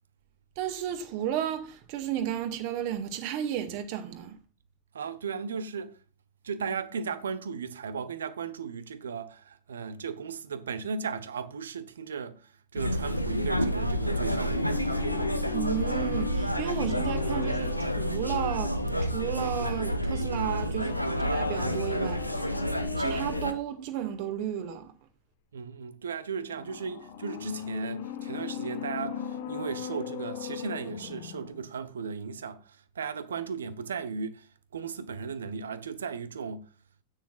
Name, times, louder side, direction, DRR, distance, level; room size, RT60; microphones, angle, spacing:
voice 1, 0.6-4.4 15.5-22.5 23.0-24.9, right 10 dB, 45° right, 2.0 m, -33 dB
voice 2, 4.9-6.0 6.4-15.0 25.5-36.7, right 6 dB, 65° right, 1.1 m, -36 dB
sound 1, 12.8-23.5, equal, 90° left, 1.0 m, -29 dB
sound 2, 13.9-19.6 20.7-23.7 26.5-31.7 32.0-32.1, left 10 dB, 55° left, 1.4 m, -39 dB
13.0 x 9.5 x 2.5 m
figure-of-eight pair, 90°, 0 cm